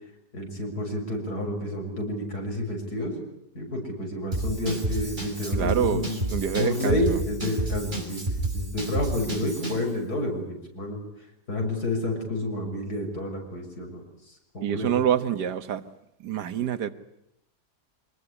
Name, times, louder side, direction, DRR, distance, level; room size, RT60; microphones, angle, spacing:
voice 1, 0.3-3.1 3.6-6.3 6.6-8.2 8.5-11.0 11.5-14.9, left 1 dB, 70° left, 7.0 m, -30 dB
Drum kit / Drum, 4.3-9.9, right 1 dB, 30° right, 5.8 m, -30 dB
voice 2, 5.6-7.2 14.6-15.8 16.2-16.9, right 9 dB, 85° right, 1.9 m, -26 dB
25.5 x 20.5 x 9.9 m
omnidirectional pair, 1.7 m